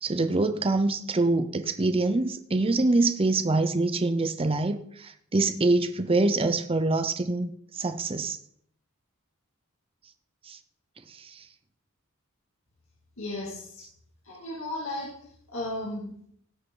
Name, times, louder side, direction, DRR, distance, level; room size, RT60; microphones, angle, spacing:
voice 1, 0.0-8.4 10.5-10.6 11.1-11.4, right 2 dB, 25° right, 9 dB, 0.6 m, -25 dB
voice 2, 13.2-13.8 14.2-15.1 15.5-16.1, left 1 dB, 65° left, -5 dB, 2.7 m, -34 dB
17.5 x 6.3 x 3.8 m, 0.66 s
head